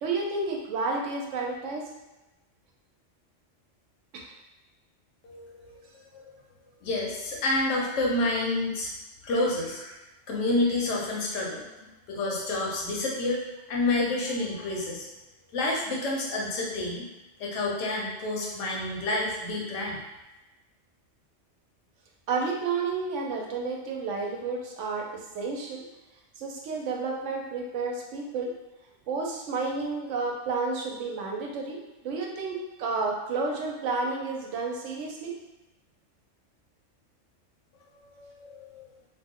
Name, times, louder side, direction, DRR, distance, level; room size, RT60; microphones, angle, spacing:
voice 1, 0.0-1.9 4.1-4.3 5.7-5.8 22.3-25.8 26.4-28.5 29.1-31.8 32.0-35.3, right 4 dB, 75° right, 0 dB, 0.9 m, -31 dB
voice 2, 5.2-5.8 6.1-6.3 6.8-8.9 9.2-9.9 10.3-13.4 13.7-15.1 15.5-17.1 17.4-20.0 38.2-38.9, left 2 dB, 80° left, -2 dB, 1.0 m, -29 dB
2.6 x 2.1 x 3.6 m, 1.0 s
omnidirectional pair, 1.3 m